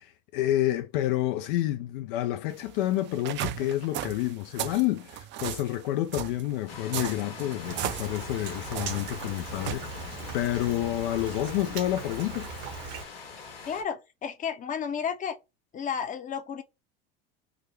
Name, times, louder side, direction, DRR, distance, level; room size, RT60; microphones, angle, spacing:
voice 1, 0.0-12.5, left 14 dB, 65° left, 0.5 m, -29 dB
sound 1, 2.5-9.8, right 12 dB, 40° right, 0.4 m, -36 dB
sound 2, 6.7-13.8, left 5 dB, 80° left, 1.5 m, -43 dB
Rain, 7.6-13.0, right 5 dB, 70° right, 1.1 m, -40 dB
voice 2, 13.6-15.4 15.7-16.6, left 7 dB, 25° left, 0.7 m, -32 dB
3.7 x 2.1 x 3.2 m
hypercardioid pair, 85°, 29 cm